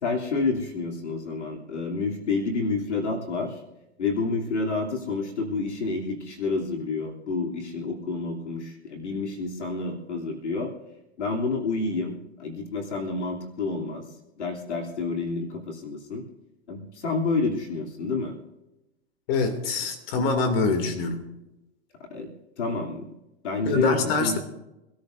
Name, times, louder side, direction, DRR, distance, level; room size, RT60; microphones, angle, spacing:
voice 1, 0.0-3.5 4.0-10.7 11.2-14.0 14.4-16.2 16.7-18.3 22.1-22.3 22.6-23.1 23.4-24.4, left 3 dB, 90° left, 1 dB, 3.1 m, -29 dB
voice 2, 19.3-21.2 23.7-24.4, left 3 dB, 60° left, 6 dB, 2.6 m, -24 dB
25.5 x 13.0 x 2.6 m, 0.94 s
hypercardioid pair, 115°, 34 cm